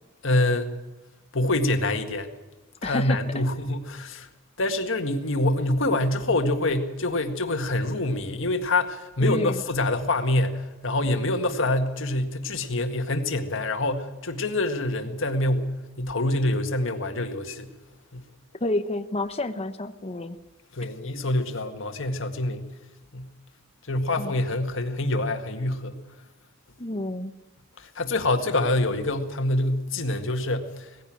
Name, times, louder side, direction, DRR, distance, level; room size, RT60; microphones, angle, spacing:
voice 1, 0.2-0.7 1.3-2.3 2.8-4.3 4.6-17.7 18.1-18.2 20.7-22.7 23.1-23.3 23.9-26.0 27.8-30.9, left 2 dB, 65° left, 6 dB, 1.9 m, -26 dB
voice 2, 2.8-3.2 9.2-9.6 18.6-20.4 24.2-24.3 26.8-27.3, left 1 dB, 30° left, 8 dB, 1.0 m, -29 dB
19.0 x 15.5 x 8.8 m, 1.1 s
head